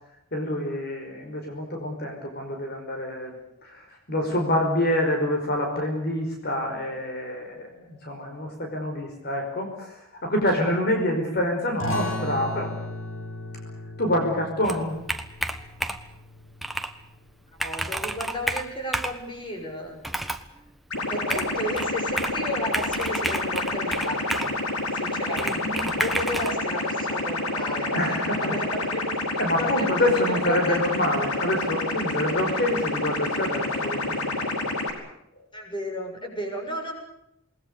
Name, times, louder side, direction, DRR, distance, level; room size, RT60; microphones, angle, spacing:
voice 1, 0.3-3.3 3.6-12.7 14.0-15.0 25.5-26.0 27.9-28.6 29.4-34.6 35.4-35.5, left 1 dB, 50° left, 2 dB, 5.2 m, -27 dB
sound 1, 11.8-17.0, left 1 dB, 70° left, 5.2 m, -36 dB
Computer keyboard, 14.6-16.1 16.6-16.9 17.3-17.4 17.6-19.2 20.0-20.5 21.3-22.4 22.7-24.6 25.4-26.5, right 1 dB, ahead, 1.4 m, -30 dB
voice 2, 17.6-20.0 21.1-24.5 24.9-29.0 29.3-30.8 35.5-36.9, equal, 20° left, 3 dB, 6.8 m, -33 dB
sound 2, 20.9-34.9, left 2 dB, 90° left, 5.3 m, -28 dB
28.5 x 20.5 x 6.8 m, 0.79 s
head